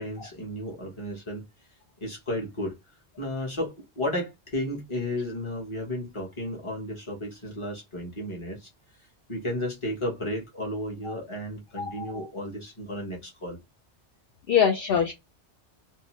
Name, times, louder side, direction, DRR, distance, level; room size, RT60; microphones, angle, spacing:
voice 1, 0.0-1.5 2.0-2.7 3.2-8.7 9.3-13.6, left 1 dB, 25° left, 1.1 m, -33 dB
voice 2, 14.5-15.1, left 7 dB, 65° left, 0.7 m, -23 dB
2.7 x 2.2 x 3.0 m
omnidirectional pair, 1.2 m